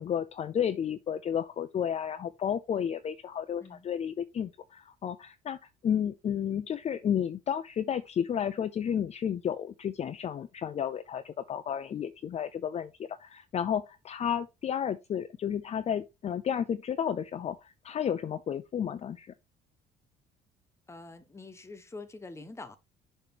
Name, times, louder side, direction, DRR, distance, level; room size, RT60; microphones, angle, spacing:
voice 1, 0.0-5.6 5.8-19.3, left 8 dB, 40° left, 0.6 m, -32 dB
voice 2, 20.9-22.8, left 3 dB, 15° left, 1.2 m, -45 dB
6.9 x 3.2 x 6.0 m
cardioid pair, 110°, 17 cm